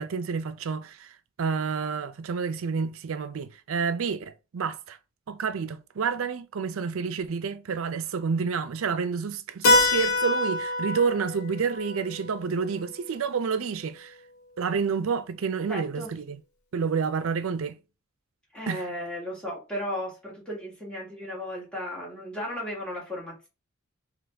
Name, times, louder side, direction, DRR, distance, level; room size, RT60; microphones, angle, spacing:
voice 1, 0.0-5.0 5.3-14.2 14.6-16.4 16.7-17.8 18.7-18.8, right 5 dB, 70° right, 0.5 m, -29 dB
Keyboard (musical), 9.6-14.1, left 2 dB, 80° left, 0.9 m, -27 dB
voice 2, 15.7-16.1 18.5-23.5, equal, 5° left, 1.7 m, -35 dB
3.8 x 2.9 x 3.4 m
head